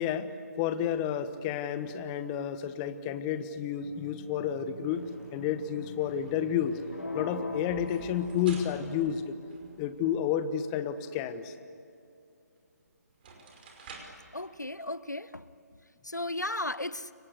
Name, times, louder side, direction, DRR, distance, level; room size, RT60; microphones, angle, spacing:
voice 1, 0.0-5.0 5.3-6.8 7.1-9.3 9.8-11.5, left 9 dB, 20° left, 11 dB, 1.2 m, -31 dB
sound 1, 3.7-9.4, right 1 dB, 5° right, 4.1 m, -47 dB
sound 2, 6.9-9.0, left 3 dB, 75° left, 3.1 m, -40 dB
sound 3, 7.7-10.1 12.6-12.7 13.1-14.3, right 4 dB, 35° right, 5.2 m, -50 dB
voice 2, 14.3-15.4 16.0-17.1, left 1 dB, 90° left, 17 dB, 1.0 m, -35 dB
29.5 x 24.5 x 8.2 m, 2.5 s
figure-of-eight pair, 140°, 9 cm